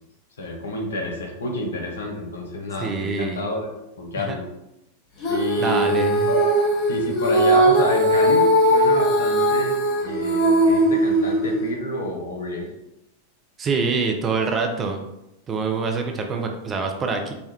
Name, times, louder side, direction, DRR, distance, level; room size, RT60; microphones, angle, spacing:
voice 1, 0.4-3.7 4.0-4.5 5.3-5.9 6.3-6.4 6.9-12.7, left 2 dB, 65° left, 1 dB, 0.6 m, -29 dB
voice 2, 2.8-3.4 4.2-4.4 5.6-6.3 13.6-15.0 15.5-17.3, right 4 dB, 25° right, 4 dB, 0.4 m, -25 dB
Female singing, 5.2-11.7, right 1 dB, 35° left, 0.9 m, -19 dB
3.3 x 2.2 x 2.8 m, 0.87 s
figure-of-eight pair, 90°, 0 cm